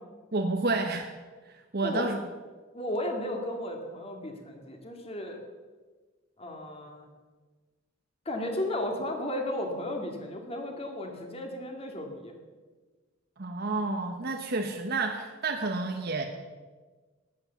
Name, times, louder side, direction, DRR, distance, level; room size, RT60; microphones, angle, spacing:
voice 1, 0.3-1.1 1.7-2.2 13.4-16.3, right 3 dB, 50° right, 3 dB, 1.0 m, -30 dB
voice 2, 1.8-2.1 2.7-5.4 6.4-7.1 8.3-12.4, left 1 dB, 30° left, 3 dB, 2.2 m, -34 dB
13.5 x 9.6 x 7.1 m, 1.3 s
head